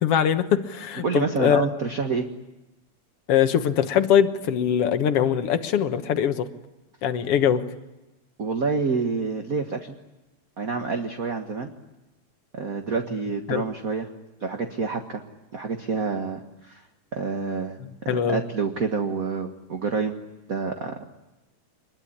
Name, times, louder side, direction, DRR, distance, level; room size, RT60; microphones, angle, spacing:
voice 1, 0.0-1.7 3.3-6.5 7.0-7.6 13.5-13.6 18.1-18.4, left 9 dB, 55° left, 10 dB, 1.9 m, -22 dB
voice 2, 1.0-2.3 8.4-9.9 10.6-11.7 12.5-14.1 14.4-15.2 15.5-16.8 17.1-20.1 20.5-21.0, right 4 dB, 40° right, 5 dB, 1.3 m, -28 dB
25.5 x 21.5 x 10.0 m, 1.0 s
omnidirectional pair, 3.6 m